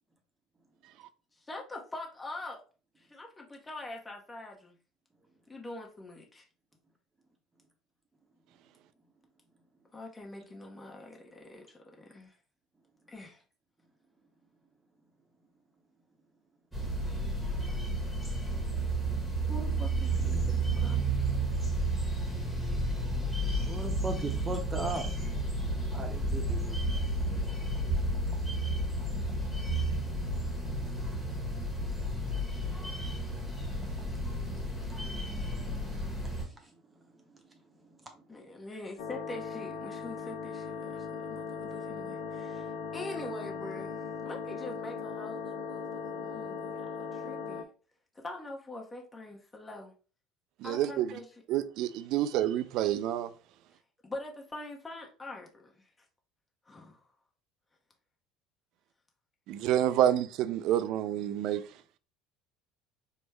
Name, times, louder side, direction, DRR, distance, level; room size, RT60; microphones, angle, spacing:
voice 1, 1.5-2.6 3.0-4.8 5.5-6.5 9.9-12.4 13.1-13.4 19.5-21.7 38.3-47.7 48.1-49.9 50.6-51.3 54.0-55.9 56.6-57.0, left 2 dB, 20° left, 0.8 m, -44 dB
sound 1, 16.7-36.4, right 1 dB, ahead, 1.2 m, -32 dB
voice 2, 23.6-25.1 25.9-26.8 36.4-36.5, right 2 dB, 15° right, 0.8 m, -37 dB
sound 2, 39.0-47.6, left 5 dB, 70° left, 0.4 m, -38 dB
voice 3, 50.6-51.1 51.5-53.3 59.5-61.6, right 11 dB, 55° right, 0.3 m, -28 dB
4.3 x 2.1 x 3.2 m
figure-of-eight pair, 65°, 0 cm